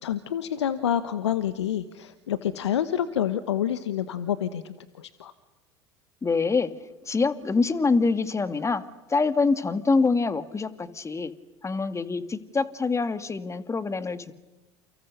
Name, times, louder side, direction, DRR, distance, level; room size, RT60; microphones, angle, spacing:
voice 1, 0.0-5.3, left 10 dB, 80° left, 13 dB, 1.2 m, -28 dB
voice 2, 6.2-6.7 7.1-8.8 9.1-11.3 11.6-14.3, left 4 dB, 20° left, 11 dB, 2.2 m, -25 dB
30.0 x 29.0 x 6.7 m, 1.1 s
hypercardioid pair, 75°, 14 cm